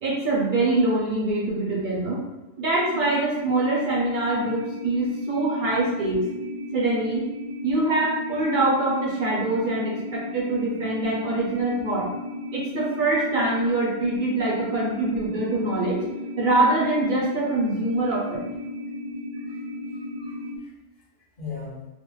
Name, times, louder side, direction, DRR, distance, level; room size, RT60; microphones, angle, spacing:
voice 1, 0.0-2.2 2.6-6.2 6.7-7.2 7.6-12.1 12.5-16.0 16.4-18.4, right 2 dB, 60° right, -4 dB, 0.5 m, -24 dB
sound 1, 2.9-20.6, left 1 dB, 85° right, 1.0 m, -35 dB
voice 2, 19.3-20.7 21.4-21.9, left 5 dB, 45° left, -9 dB, 0.8 m, -40 dB
2.4 x 2.1 x 3.0 m, 1.0 s
omnidirectional pair, 1.3 m